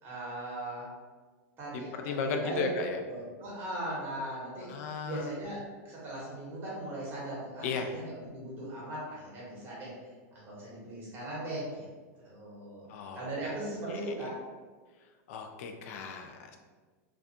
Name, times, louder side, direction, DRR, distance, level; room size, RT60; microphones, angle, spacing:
voice 1, 0.0-0.9 1.6-2.6 3.1-4.7 5.0-5.6 5.8-9.9 10.3-11.9 12.2-12.9 13.1-14.4, right 1 dB, 25° right, -6 dB, 1.0 m, -39 dB
voice 2, 2.0-3.0 4.7-5.3 7.6-7.9 12.9-13.2 13.9-14.0 15.3-16.6, left 4 dB, 60° left, 5 dB, 0.3 m, -35 dB
2.3 x 2.3 x 2.6 m, 1.4 s
supercardioid pair, 150°, 9 cm